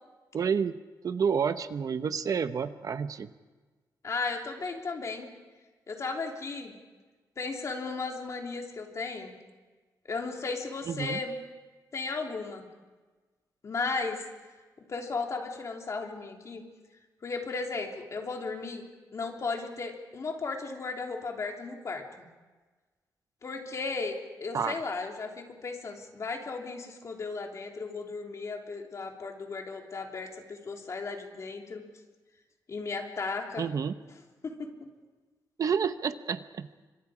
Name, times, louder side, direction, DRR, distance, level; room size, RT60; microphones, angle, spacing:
voice 1, 0.3-0.8 1.0-3.3 10.9-11.2 24.5-24.8 33.6-34.0 35.6-36.7, right 6 dB, 55° right, 11 dB, 0.9 m, -29 dB
voice 2, 4.0-5.3 5.9-6.8 7.4-9.3 10.1-11.3 11.9-12.6 13.6-14.2 14.9-16.6 17.2-18.9 19.1-22.2 23.4-31.8 32.7-33.7 34.4-34.7, left 4 dB, 45° left, 2 dB, 3.2 m, -35 dB
30.0 x 25.5 x 5.0 m, 1.3 s
wide cardioid pair, 165°, 7 cm